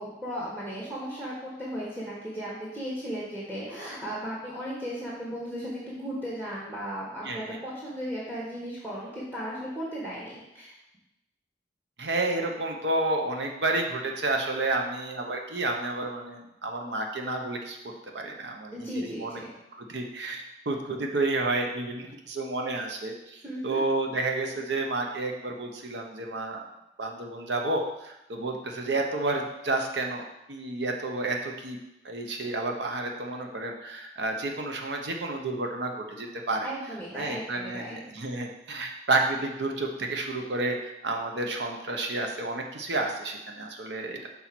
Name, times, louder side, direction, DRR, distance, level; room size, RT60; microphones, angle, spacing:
voice 1, 0.0-10.8 18.7-19.5 23.4-23.8 36.6-38.0, equal, 10° right, -7 dB, 1.4 m, -36 dB
voice 2, 7.2-7.6 12.0-19.4 19.8-26.6 27.0-30.2 30.5-31.8 32.0-36.7 37.1-44.3, right 2 dB, 80° right, 2 dB, 0.9 m, -30 dB
5.5 x 4.3 x 5.9 m, 0.90 s
head